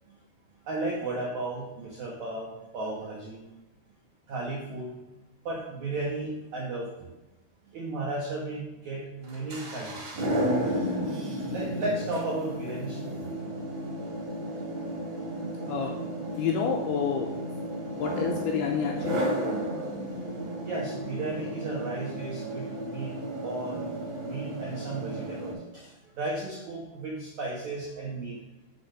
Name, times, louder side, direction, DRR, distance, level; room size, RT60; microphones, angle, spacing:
voice 1, 0.7-3.4 4.3-4.9 5.4-7.1 7.7-10.1 10.6-10.7 11.5-13.3 20.6-23.9 24.2-28.4, right 2 dB, 80° right, -3 dB, 1.6 m, -34 dB
sound 1, 9.2-25.5, right 1 dB, 50° right, 2.7 m, -33 dB
voice 2, 16.4-17.3 18.0-19.2, left 7 dB, 85° left, 0 dB, 2.3 m, -28 dB
6.8 x 4.3 x 6.5 m, 1.0 s
omnidirectional pair, 5.2 m